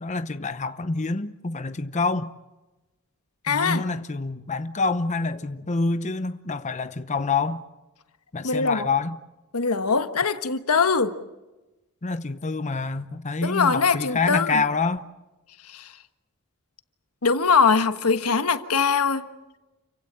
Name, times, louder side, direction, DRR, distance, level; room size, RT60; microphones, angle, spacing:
voice 1, 0.0-2.3 3.5-7.6 8.3-9.2 12.0-15.1, left 3 dB, 35° left, 0.8 m, -27 dB
voice 2, 3.4-3.8 8.4-8.9 9.5-11.1 13.4-14.6 15.7-15.9 17.2-19.3, left 5 dB, 85° left, 1.4 m, -22 dB
29.5 x 16.5 x 8.8 m
head